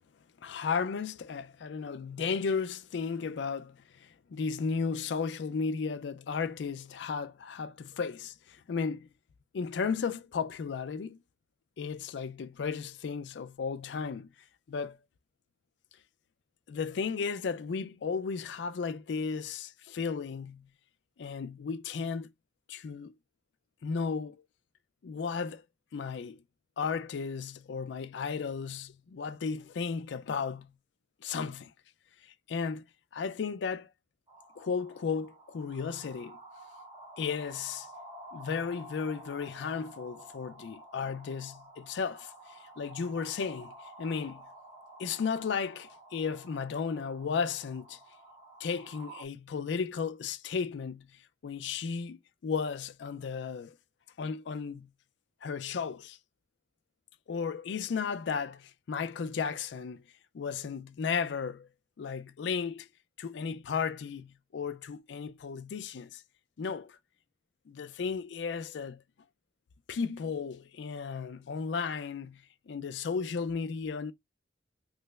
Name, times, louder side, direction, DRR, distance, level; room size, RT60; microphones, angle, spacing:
voice 1, 0.4-9.1 9.5-11.2 11.8-14.3 14.7-15.0 16.7-20.7 21.2-22.3 22.7-23.1 23.8-24.4 25.0-25.6 25.9-26.4 26.8-30.7 31.2-31.7 32.5-32.8 33.1-33.9 34.6-36.4 37.2-37.9 38.3-43.7 44.0-44.4 45.0-48.0 48.6-51.1 51.4-53.7 54.2-54.9 55.4-56.2 57.3-60.0 60.3-61.7 62.0-62.9 63.2-66.2 66.6-67.0 67.7-69.0 69.9-74.1, left 5 dB, 70° left, 0.4 m, -34 dB
sound 1, 34.3-49.3, right 1 dB, 25° right, 0.7 m, -51 dB
3.2 x 2.0 x 3.1 m
head